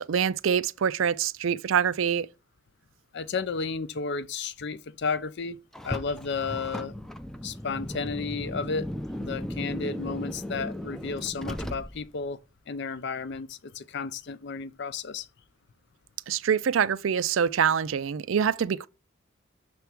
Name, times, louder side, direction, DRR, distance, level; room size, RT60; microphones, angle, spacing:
voice 1, 0.0-2.3 16.3-18.9, right 7 dB, 70° right, 0.4 m, -25 dB
voice 2, 3.1-5.6 5.8-6.9 7.4-8.9 9.2-12.4 12.7-15.3, left 4 dB, 60° left, 0.5 m, -32 dB
Car, 5.7-12.3, equal, ahead, 0.4 m, -36 dB
6.8 x 3.4 x 6.0 m
head